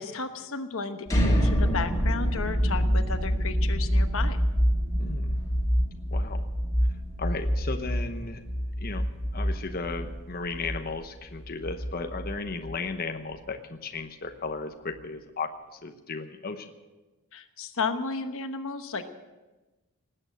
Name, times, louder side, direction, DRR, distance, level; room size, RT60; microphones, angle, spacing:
voice 1, 0.0-4.4 17.3-19.0, left 4 dB, 65° left, 7 dB, 1.0 m, -33 dB
sound 1, 1.1-12.9, equal, 15° left, 2.5 m, -26 dB
voice 2, 5.0-5.4 6.1-6.4 7.2-8.4 8.8-16.7, left 3 dB, 40° left, 6 dB, 1.0 m, -35 dB
19.5 x 8.9 x 7.6 m, 1.1 s
head